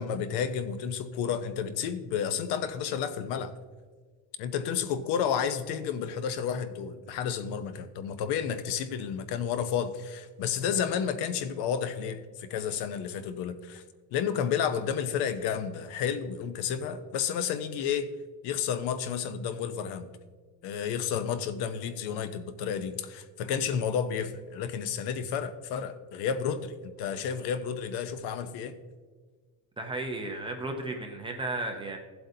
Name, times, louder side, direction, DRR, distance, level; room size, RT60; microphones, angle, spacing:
voice 1, 0.0-3.5 4.4-13.8 14.1-18.1 18.4-20.1 20.6-28.7, left 7 dB, 60° left, 11 dB, 0.8 m, -31 dB
voice 2, 29.8-32.0, right 2 dB, 10° right, 2 dB, 0.6 m, -34 dB
16.0 x 7.8 x 2.7 m, 1.4 s
cardioid pair, 170°, 45 cm